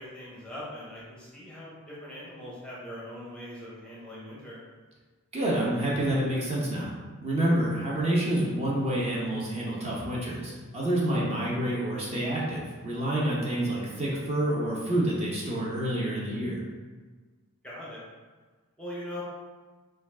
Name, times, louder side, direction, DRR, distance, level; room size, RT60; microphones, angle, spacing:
voice 1, 0.0-4.6 17.6-18.0 18.8-19.2, left 1 dB, 5° left, -7 dB, 0.7 m, -41 dB
voice 2, 5.3-6.9 7.2-16.6, right 1 dB, 30° right, -5 dB, 0.9 m, -28 dB
5.1 x 2.4 x 3.6 m, 1.4 s
head